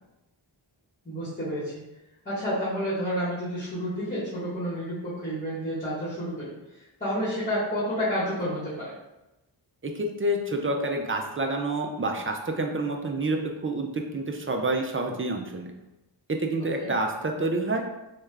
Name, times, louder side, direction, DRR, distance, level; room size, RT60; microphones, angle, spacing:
voice 1, 1.0-1.8 2.2-8.9 16.8-16.9, equal, 20° left, -10 dB, 1.3 m, -30 dB
voice 2, 9.8-13.4 13.6-15.7 16.3-17.8, right 2 dB, 30° right, 2 dB, 0.4 m, -28 dB
3.2 x 2.3 x 3.3 m, 0.96 s
wide cardioid pair, 70°, 46 cm